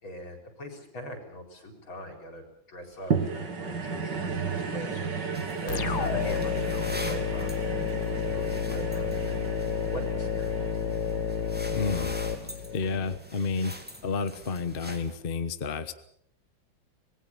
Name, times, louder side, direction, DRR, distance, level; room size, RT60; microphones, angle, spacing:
voice 1, 0.0-5.0 5.6-10.6, equal, 75° left, 5 dB, 5.0 m, -42 dB
sound 1, 3.1-13.6 14.2-14.3, right 5 dB, 60° right, 2.9 m, -34 dB
sound 2, 5.3-15.2, equal, 5° right, 2.7 m, -45 dB
sound 3, 5.7-13.2, left 7 dB, 55° left, 1.8 m, -30 dB
voice 2, 11.7-12.1 12.7-13.7 14.0-15.9, left 4 dB, 35° left, 11 dB, 1.1 m, -30 dB
26.0 x 19.5 x 7.3 m, 0.69 s
omnidirectional pair, 2.2 m